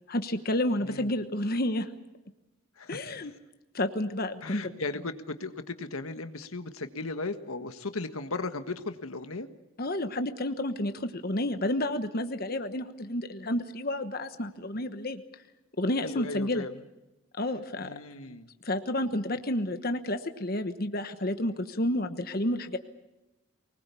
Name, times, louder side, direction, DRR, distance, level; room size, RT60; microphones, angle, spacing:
voice 1, 0.1-1.9 2.9-3.3 3.7-4.7 9.8-15.2 15.8-16.7 17.4-17.9 18.6-22.8, left 1 dB, 45° left, 8 dB, 1.2 m, -30 dB
voice 2, 0.8-1.1 2.8-3.2 4.4-9.5 15.8-16.7 17.8-18.5, left 3 dB, 85° left, 9 dB, 1.6 m, -36 dB
24.0 x 20.5 x 8.4 m, 1.0 s
head